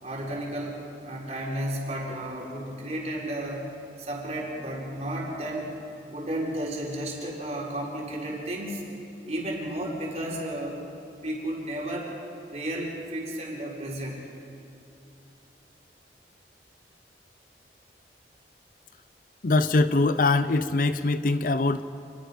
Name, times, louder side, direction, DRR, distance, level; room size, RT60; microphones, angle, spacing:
voice 1, 0.0-3.7 4.0-5.7 6.1-8.8 9.3-10.9 11.2-12.1 12.5-14.2, right 1 dB, 40° right, -3 dB, 4.3 m, -33 dB
voice 2, 19.4-21.8, left 2 dB, 50° left, 13 dB, 0.6 m, -22 dB
27.5 x 21.0 x 5.2 m, 2.8 s
head